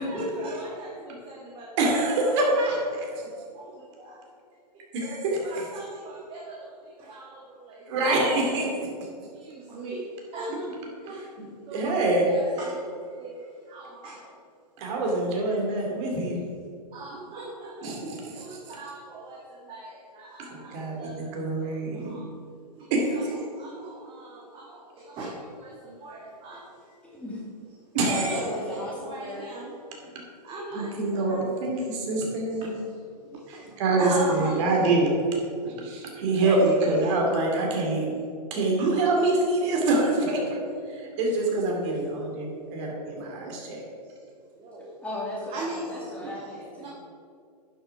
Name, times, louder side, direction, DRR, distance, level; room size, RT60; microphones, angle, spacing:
voice 1, 0.0-2.7 2.9-4.2 4.7-4.8 5.4-8.7 9.3-10.7 11.0-11.3 11.6-14.4 15.2-16.1 16.9-17.9 18.2-22.3 22.8-27.0 28.0-29.8 30.4-31.8 32.5-34.9 35.2-36.0 36.3-37.2 37.6-38.2 38.8-38.9 41.0-41.6 41.9-42.9 43.2-43.5 44.0-44.2 44.6-44.9 45.5-46.3 46.8-46.9, right 2 dB, 25° right, -3 dB, 1.6 m, -40 dB
voice 2, 1.8-3.1 4.9-5.6 7.9-8.7 11.4-11.5 11.7-12.3 14.8-16.4 17.8-18.4 20.5-22.2 22.9-23.0 27.9-28.4 30.7-32.7 33.5-35.1 35.6-40.6 40.9-43.8, right 2 dB, 45° right, -1 dB, 2.7 m, -25 dB
voice 3, 27.0-27.4 27.9-29.5 45.0-46.9, left 1 dB, 5° left, -5 dB, 2.1 m, -35 dB
11.0 x 6.3 x 4.8 m, 2.4 s
hypercardioid pair, 135°, 21 cm